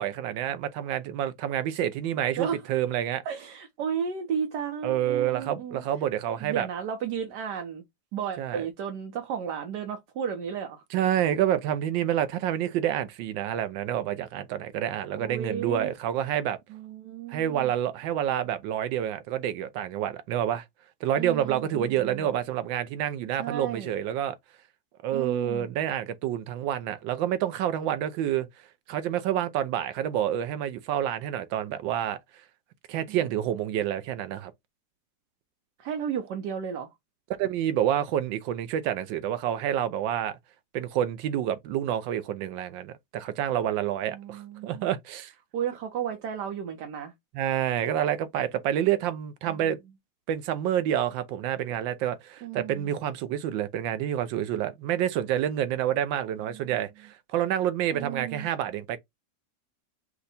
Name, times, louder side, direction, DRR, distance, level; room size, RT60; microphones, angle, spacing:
voice 1, 0.0-3.2 4.8-6.7 8.4-8.7 10.9-16.6 17.3-20.6 21.0-24.4 25.0-28.5 28.9-32.2 32.9-34.5 37.4-40.4 40.7-45.3 47.3-49.8 50.3-59.0, right 10 dB, 85° right, 1.4 m, -28 dB
voice 2, 3.2-5.8 6.4-7.8 8.1-10.8 15.2-15.9 16.7-17.7 21.2-22.3 23.4-23.9 25.1-25.7 33.1-33.2 35.8-36.9 44.0-44.9 45.5-47.1 52.4-53.0 56.4-56.8 57.9-58.5, right 8 dB, 70° right, 1.3 m, -34 dB
5.4 x 2.2 x 4.0 m
omnidirectional pair, 2.0 m